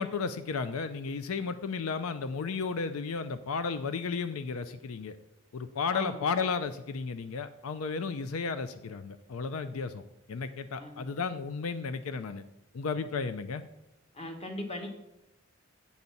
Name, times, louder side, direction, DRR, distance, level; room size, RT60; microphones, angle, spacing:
voice 1, 0.0-5.2 5.5-10.0 10.3-12.4 12.7-13.6, left 5 dB, 80° left, 11 dB, 0.5 m, -33 dB
voice 2, 10.8-11.3 14.1-14.9, left 1 dB, 30° left, 3 dB, 1.3 m, -39 dB
8.4 x 4.0 x 7.0 m, 0.92 s
head